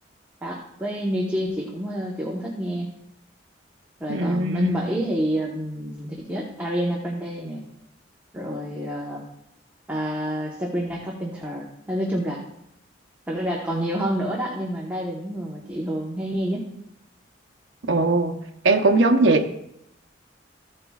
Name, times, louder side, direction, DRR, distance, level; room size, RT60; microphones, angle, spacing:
voice 1, 0.4-2.9 4.0-7.6 8.3-9.2 9.9-12.4 13.3-16.7, equal, 10° right, 1.0 m, -28 dB
voice 2, 4.1-4.9 17.9-18.4 18.6-19.6, right 2 dB, 75° right, 0.7 m, -20 dB
14.5 x 7.7 x 2.4 m
head